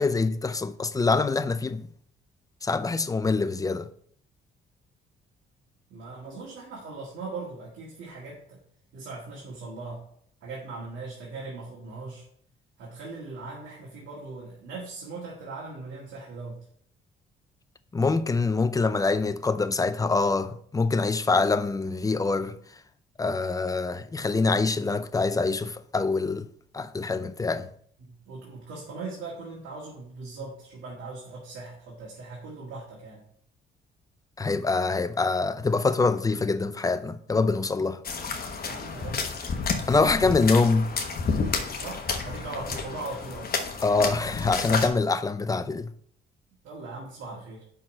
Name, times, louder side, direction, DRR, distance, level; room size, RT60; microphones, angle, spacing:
voice 1, 0.0-1.9 2.6-3.9 17.9-22.6 23.2-26.5 26.7-27.7 34.4-38.0 39.9-40.9 43.8-45.9, left 3 dB, 15° left, 0.6 m, -25 dB
voice 2, 5.9-8.6 8.9-10.0 10.4-12.2 12.8-16.6 28.0-33.2 38.6-39.2 41.8-43.5 46.6-47.6, right 3 dB, 85° right, 1.8 m, -39 dB
sound 1, 38.0-44.9, left 5 dB, 50° left, 1.2 m, -31 dB
5.7 x 4.6 x 6.3 m
cardioid pair, 90°, 20 cm